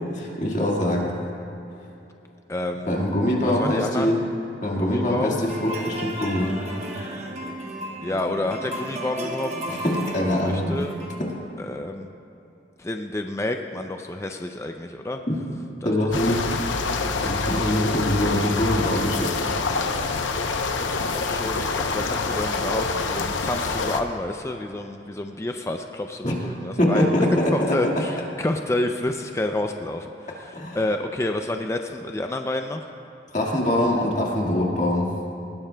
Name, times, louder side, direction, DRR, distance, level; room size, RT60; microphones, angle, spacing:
voice 1, 0.2-1.1 2.9-4.2 4.6-6.6 9.7-10.8 11.2-11.3 15.8-16.5 16.8-19.5 26.2-26.4 26.8-27.9 30.5-30.8 33.3-35.1, left 1 dB, 40° left, -2 dB, 1.8 m, -23 dB
voice 2, 2.5-2.9 3.5-4.2 4.8-5.4 8.0-9.5 10.4-10.9 11.6-12.1 12.8-15.2 15.8-15.9 16.3-16.4 20.8-32.9, left 1 dB, 15° left, 4 dB, 0.4 m, -29 dB
sound 1, 5.5-11.2, right 1 dB, 35° right, 1.1 m, -34 dB
sound 2, 16.1-24.0, left 4 dB, 90° left, 0.8 m, -26 dB
19.5 x 16.5 x 2.3 m, 2.8 s
head